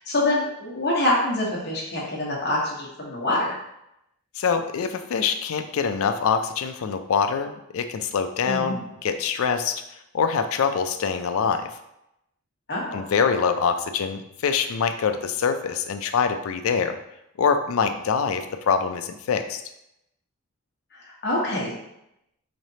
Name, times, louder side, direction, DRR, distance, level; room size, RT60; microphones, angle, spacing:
voice 1, 0.0-3.5 8.4-8.8 12.7-13.0 21.0-21.7, left 1 dB, 50° left, -4 dB, 1.1 m, -25 dB
voice 2, 4.4-9.8 10.1-11.7 12.9-17.0 17.4-19.6, left 6 dB, 70° left, 8 dB, 0.4 m, -24 dB
4.0 x 3.2 x 2.7 m, 0.82 s
head